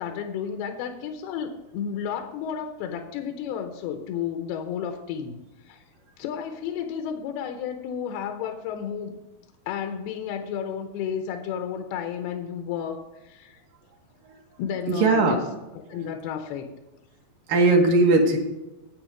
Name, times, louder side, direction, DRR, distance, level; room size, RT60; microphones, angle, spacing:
voice 1, 0.0-5.4 5.7-5.8 6.2-9.2 9.7-13.6 14.6-15.4 15.9-16.7, left 8 dB, 90° left, 6 dB, 2.8 m, -32 dB
voice 2, 14.9-15.4 15.9-16.1 17.5-18.4, right 3 dB, 65° right, 1 dB, 2.7 m, -19 dB
9.4 x 8.7 x 5.0 m, 1.0 s
omnidirectional pair, 4.5 m